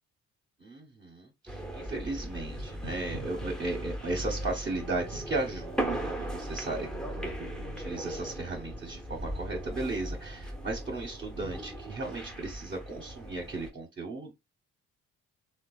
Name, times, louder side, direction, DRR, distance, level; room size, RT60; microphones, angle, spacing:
voice 1, 0.6-6.9 7.2-14.3, right 2 dB, 30° right, 0.9 m, -36 dB
sound 1, 1.5-13.7, right 1 dB, ahead, 0.8 m, -38 dB
3.3 x 2.2 x 2.3 m
hypercardioid pair, 60°, 38 cm